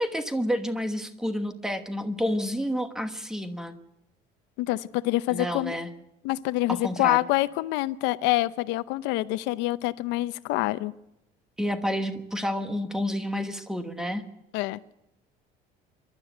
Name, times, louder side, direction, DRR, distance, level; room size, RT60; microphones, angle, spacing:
voice 1, 0.0-3.7 5.3-5.9 6.7-7.2 11.6-14.2, equal, 5° right, 8 dB, 1.2 m, -29 dB
voice 2, 4.6-5.8 6.2-10.9 14.5-14.8, left 18 dB, 85° left, 14 dB, 0.8 m, -26 dB
26.5 x 12.5 x 8.0 m, 0.90 s
cardioid pair, 175°, 18 cm